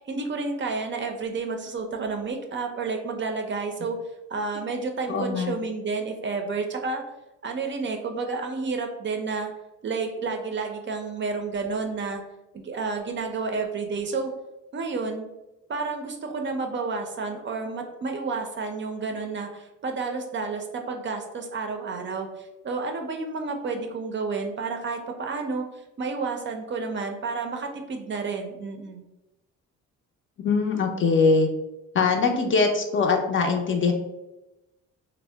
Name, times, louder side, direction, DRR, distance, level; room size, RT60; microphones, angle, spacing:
voice 1, 0.0-4.0 4.3-7.0 7.4-9.5 9.8-12.2 12.5-14.3 14.7-15.3 15.7-25.7 26.0-29.0, right 4 dB, 40° right, 4 dB, 0.4 m, -30 dB
voice 2, 5.1-5.6 30.4-31.5 31.9-33.9, left 4 dB, 40° left, 3 dB, 0.5 m, -22 dB
2.7 x 2.0 x 3.3 m, 0.96 s
cardioid pair, 90°, 30 cm